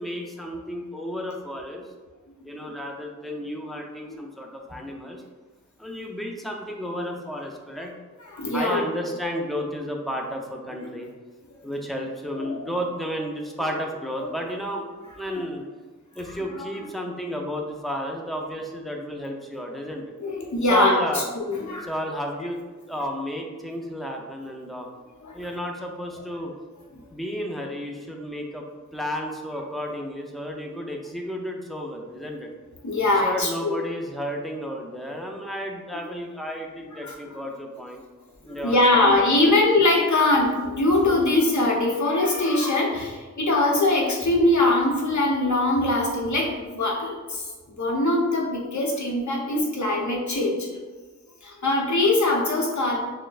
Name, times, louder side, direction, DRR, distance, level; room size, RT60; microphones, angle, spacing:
voice 1, 0.0-1.9 2.4-5.2 5.8-7.9 8.5-11.1 11.6-14.9 15.1-15.6 16.2-20.1 20.7-21.2 21.8-22.6 22.9-24.9 25.3-26.5 27.1-28.7 28.9-32.5 33.2-38.0 38.4-39.7, equal, ahead, 1 dB, 0.5 m, -32 dB
voice 2, 8.3-8.9 12.4-12.7 14.2-14.3 15.3-15.4 16.5-16.7 20.2-21.9 25.2-25.4 32.8-33.7 37.0-37.1 38.5-50.7 51.4-53.0, left 2 dB, 65° left, -1 dB, 0.8 m, -22 dB
6.2 x 2.2 x 2.4 m, 1.3 s
wide cardioid pair, 70°, 31 cm